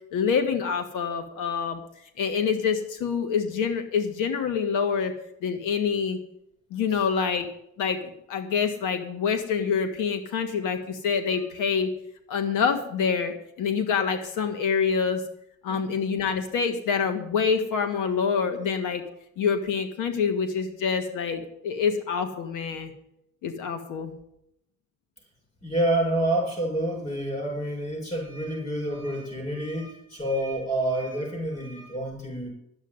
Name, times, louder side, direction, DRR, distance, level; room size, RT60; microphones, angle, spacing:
voice 1, 0.1-1.8 2.2-5.1 5.4-6.2 6.7-7.5 7.8-8.0 8.3-11.9 12.3-15.2 15.6-19.0 19.4-22.9 23.4-24.1, left 6 dB, 80° left, 7 dB, 1.6 m, -26 dB
voice 2, 25.6-32.5, right 1 dB, 20° left, 1 dB, 6.8 m, -28 dB
11.5 x 8.4 x 9.5 m, 0.77 s
cardioid pair, 150°, 31 cm